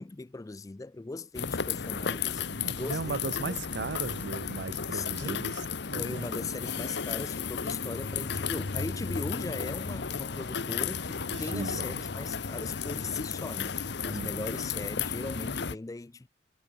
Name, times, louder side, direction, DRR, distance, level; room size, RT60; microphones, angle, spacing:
voice 1, 0.0-2.4 2.7-3.6 4.9-5.5 6.0-16.3, left 3 dB, 15° left, 0.3 m, -39 dB
sound 1, 1.3-15.8, left 6 dB, 60° left, 0.9 m, -34 dB
voice 2, 2.5-5.6 5.9-6.3 11.3-12.0 14.1-14.5, right 4 dB, 55° right, 0.6 m, -37 dB
head